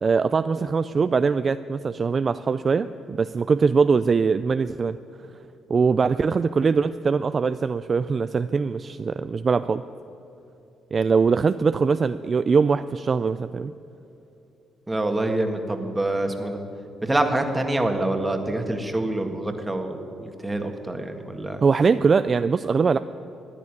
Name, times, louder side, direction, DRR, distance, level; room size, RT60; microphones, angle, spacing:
voice 1, 0.0-5.0 5.7-9.8 10.9-13.7 21.6-23.0, right 5 dB, 40° right, 12 dB, 0.3 m, -22 dB
voice 2, 14.9-16.6 17.0-21.6, right 1 dB, 15° right, 5 dB, 1.7 m, -26 dB
14.0 x 9.9 x 9.8 m, 2.8 s
cardioid pair, 90°, 0 cm